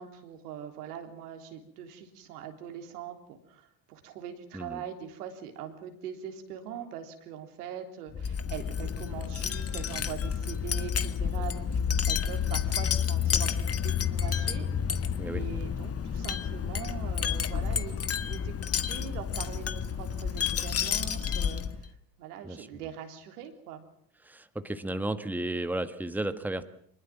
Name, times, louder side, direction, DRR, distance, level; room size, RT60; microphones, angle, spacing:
voice 1, 0.0-11.8 12.1-18.5 18.9-23.9, right 8 dB, 80° right, 6 dB, 3.6 m, -42 dB
Wind chime, 8.1-21.9, left 7 dB, 30° left, 1.6 m, -30 dB
voice 2, 24.2-26.6, right 1 dB, 5° right, 10 dB, 1.6 m, -33 dB
24.5 x 21.0 x 7.5 m, 0.64 s
hypercardioid pair, 70°, 46 cm